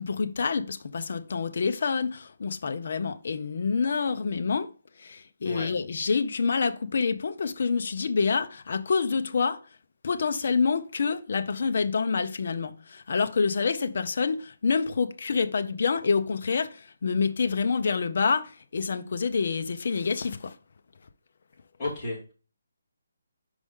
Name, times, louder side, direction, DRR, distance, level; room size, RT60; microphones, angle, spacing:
voice 1, 0.0-4.7 5.0-9.6 10.0-20.6, left 5 dB, 45° left, 0.5 m, -27 dB
voice 2, 21.8-22.3, left 2 dB, 10° left, 2.4 m, -33 dB
5.3 x 4.8 x 3.7 m
hypercardioid pair, 180°, 0 cm